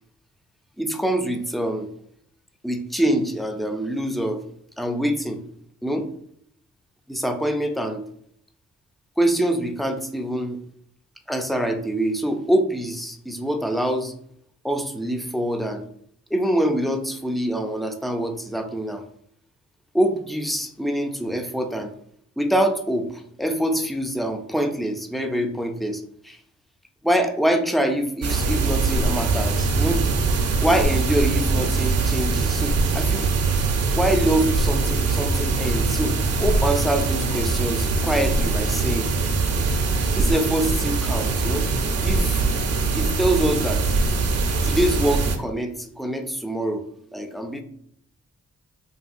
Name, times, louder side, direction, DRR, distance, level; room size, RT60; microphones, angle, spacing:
voice 1, 0.8-1.9 2.6-4.4 4.8-5.4 5.8-6.1 7.1-8.0 9.2-10.6 11.3-14.1 14.6-15.9 16.3-19.0 19.9-21.9 22.4-26.4 27.0-30.0 30.6-33.3 34.0-39.1 40.1-41.7 42.0-42.4 42.9-43.8 44.6-46.8 47.1-47.6, right 1 dB, ahead, 5 dB, 0.3 m, -25 dB
sound 1, 28.2-45.4, right 3 dB, 50° right, 0.5 m, -22 dB
2.7 x 2.7 x 2.4 m, 0.68 s
supercardioid pair, 50°, 31 cm